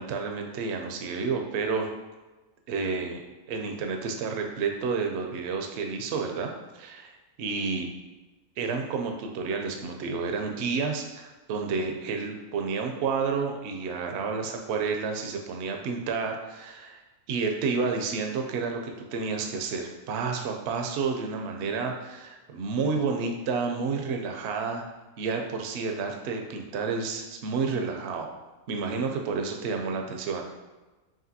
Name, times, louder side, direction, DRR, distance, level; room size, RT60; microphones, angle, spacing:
voice 1, 0.0-1.9 2.7-3.2 3.5-7.9 8.6-17.0 17.3-18.8 19.1-24.8 25.2-28.3 28.7-30.4, right 4 dB, 65° right, 3 dB, 0.7 m, -30 dB
5.0 x 3.0 x 2.8 m, 1.2 s
omnidirectional pair, 1.5 m